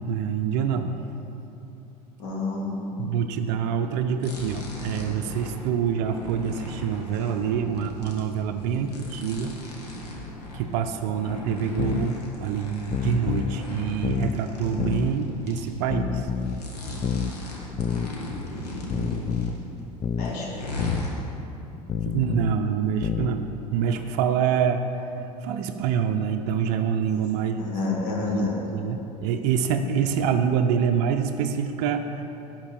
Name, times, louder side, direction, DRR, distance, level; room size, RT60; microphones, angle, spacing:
voice 1, 0.1-1.0 3.0-9.5 10.5-16.3 22.0-24.8 25.4-27.7 28.3-32.2, right 7 dB, 50° right, 5 dB, 0.6 m, -26 dB
voice 2, 2.2-3.0 18.8-19.4 20.1-20.7 27.6-28.7, left 3 dB, 55° left, -4 dB, 2.5 m, -30 dB
sound 1, 4.2-15.7 16.2-19.8 20.2-21.1, left 1 dB, 70° left, 1.7 m, -37 dB
sound 2, 11.8-12.1 12.9-13.6 14.0-14.4 14.8-15.1 15.9-16.6 17.0-17.3 17.8-18.1 18.9-19.6 20.0-20.4 20.8-21.1 21.9-22.6 23.0-23.4, left 7 dB, 20° left, 0.3 m, -28 dB
11.5 x 4.8 x 7.5 m, 2.9 s
figure-of-eight pair, 70°, 20 cm